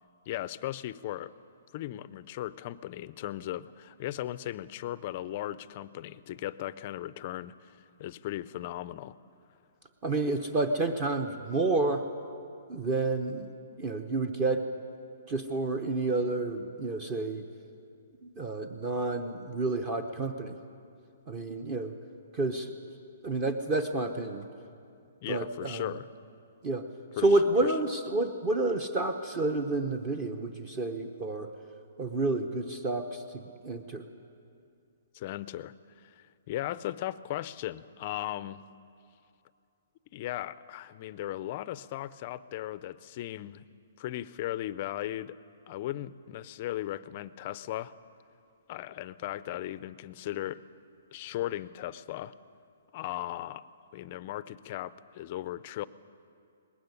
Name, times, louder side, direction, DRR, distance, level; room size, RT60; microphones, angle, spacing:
voice 1, 0.3-1.3 1.7-9.2 25.2-26.1 27.2-27.3 35.1-35.7 36.0-38.6 40.1-43.7 44.0-45.4 45.7-47.9 48.7-50.6 51.1-52.3 52.9-53.6 53.9-55.9, left 14 dB, 35° left, 17 dB, 0.5 m, -37 dB
voice 2, 10.0-12.0 12.7-13.5 13.8-14.6 15.3-17.4 18.2-20.6 21.3-21.9 22.3-22.7 23.2-24.5 25.3-25.9 26.6-26.9 27.2-31.5 32.0-34.0, right 2 dB, 25° right, 7 dB, 0.8 m, -29 dB
20.0 x 16.0 x 9.7 m, 2.5 s
hypercardioid pair, 170°, 0 cm